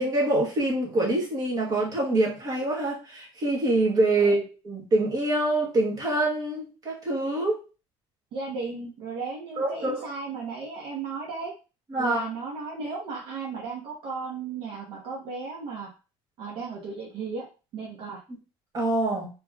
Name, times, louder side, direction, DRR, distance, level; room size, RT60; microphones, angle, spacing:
voice 1, 0.0-4.4 4.6-7.6 9.6-10.0 11.9-12.3 18.7-19.3, right 2 dB, 35° right, -2 dB, 1.9 m, -25 dB
voice 2, 8.3-11.5 12.0-15.9 16.4-17.5 17.7-18.2, right 4 dB, 55° right, -2 dB, 1.2 m, -35 dB
4.1 x 3.4 x 3.5 m, 0.32 s
cardioid pair, 160°, 11 cm